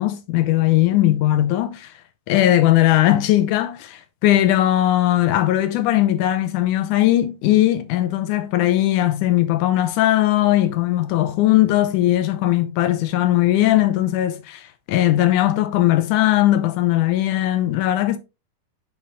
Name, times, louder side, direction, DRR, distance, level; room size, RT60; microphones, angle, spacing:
voice 1, 0.0-1.9 2.3-18.2, left 14 dB, 75° left, 2.1 m, -19 dB
7.2 x 4.6 x 3.1 m
omnidirectional pair, 4.0 m